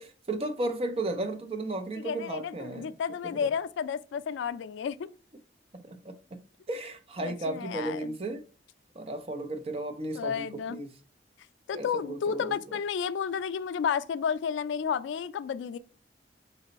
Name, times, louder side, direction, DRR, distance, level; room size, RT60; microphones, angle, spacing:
voice 1, 0.0-2.9 5.7-6.4 6.7-8.4 9.0-10.9 11.7-12.5, right 2 dB, 35° right, 0.5 m, -34 dB
voice 2, 2.0-5.1 7.2-8.1 10.1-10.8 11.7-15.8, left 7 dB, 90° left, 0.3 m, -32 dB
4.1 x 3.0 x 4.0 m
head